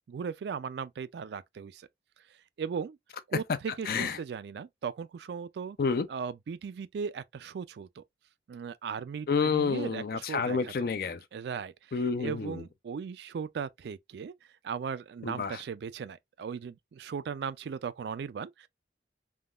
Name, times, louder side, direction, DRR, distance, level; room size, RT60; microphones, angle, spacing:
voice 1, 0.1-1.9 2.6-3.0 3.3-5.8 6.1-8.0 8.5-10.7 11.3-11.7 12.2-14.3 14.6-18.7, right 6 dB, 70° right, 0.3 m, -37 dB
voice 2, 3.9-4.2 5.8-6.1 9.3-11.2 11.9-12.6 15.2-15.6, left 5 dB, 55° left, 0.4 m, -29 dB
3.5 x 2.3 x 2.3 m
head